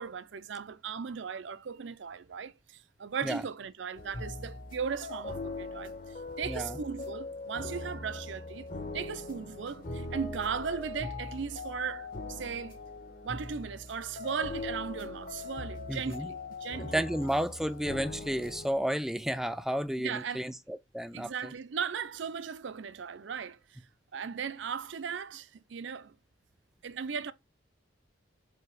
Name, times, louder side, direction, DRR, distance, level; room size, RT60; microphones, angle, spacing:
voice 1, 0.0-12.8 13.2-17.1 20.0-20.5 21.1-23.8 24.1-26.2 26.8-27.3, right 6 dB, 75° right, 0.5 m, -37 dB
sound 1, 4.0-18.7, left 2 dB, 45° left, 1.1 m, -41 dB
voice 2, 6.5-6.8 15.9-16.3 16.8-21.5, equal, ahead, 0.3 m, -32 dB
7.8 x 2.8 x 4.7 m
head